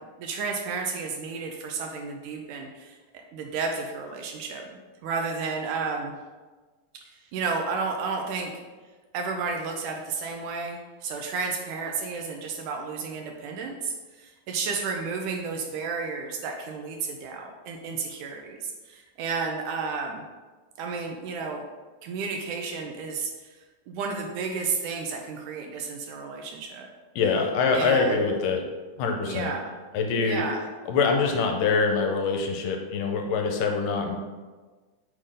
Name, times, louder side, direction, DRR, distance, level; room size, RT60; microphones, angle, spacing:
voice 1, 0.2-3.0 3.3-4.7 5.0-6.1 7.1-8.6 9.1-20.2 20.8-21.6 22.0-23.6 23.9-26.9 27.7-28.2 29.2-29.8 30.2-30.7, right 4 dB, 80° right, 2 dB, 2.0 m, -32 dB
voice 2, 27.2-28.6 29.0-29.5 29.9-30.4 30.9-34.2, left 4 dB, 80° left, 3 dB, 2.2 m, -24 dB
6.5 x 3.8 x 5.0 m, 1.3 s
omnidirectional pair, 3.9 m